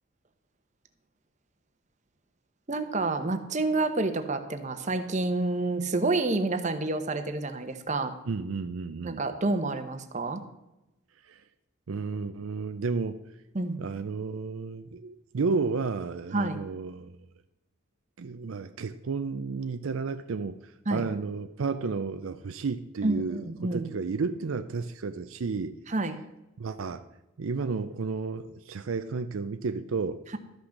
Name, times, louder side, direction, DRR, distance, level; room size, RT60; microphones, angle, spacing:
voice 1, 2.7-8.1 9.0-10.4 13.5-13.8 16.3-16.6 20.9-21.1 23.0-23.9 25.9-26.2, right 2 dB, 35° right, 8 dB, 0.9 m, -28 dB
voice 2, 8.3-9.2 11.3-11.4 11.9-13.2 13.8-17.2 18.2-20.6 20.9-25.8 26.6-27.0 27.4-30.2, right 4 dB, 75° right, 10 dB, 0.5 m, -32 dB
13.0 x 6.0 x 6.5 m, 0.95 s
head